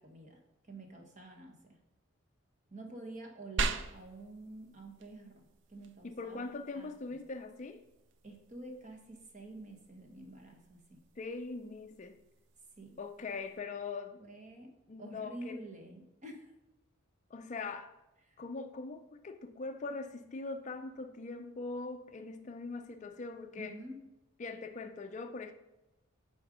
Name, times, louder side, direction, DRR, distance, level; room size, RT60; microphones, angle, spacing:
voice 1, 0.0-1.8 2.7-7.2 8.2-11.0 12.8-13.0 14.2-14.7 15.0-16.5 18.3-18.4 23.5-24.0, right 1 dB, 35° right, 1.1 m, -49 dB
sound 1, 3.6-13.6, right 4 dB, 55° right, 0.4 m, -43 dB
voice 2, 6.0-7.8 11.2-12.2 13.0-14.2 14.9-15.6 17.3-17.9 18.4-23.7 24.4-25.5, left 3 dB, 35° left, 0.4 m, -41 dB
8.7 x 4.4 x 4.9 m
head